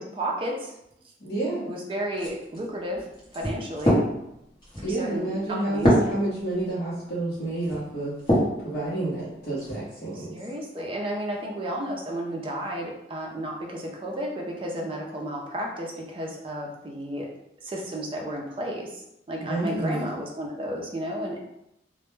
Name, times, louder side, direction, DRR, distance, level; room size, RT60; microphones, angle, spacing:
voice 1, 0.1-0.7 1.7-3.1 3.3-4.0 4.8-6.0 10.1-17.3 17.6-19.0 19.3-21.4, right 1 dB, 30° right, -1 dB, 0.4 m, -32 dB
voice 2, 1.2-1.7 4.8-8.1 8.6-10.3 19.4-20.0, right 2 dB, 55° left, -11 dB, 0.7 m, -29 dB
sound 1, 2.1-8.6 9.1-9.8, equal, 25° left, 0.8 m, -27 dB
2.1 x 2.1 x 3.0 m, 0.81 s
head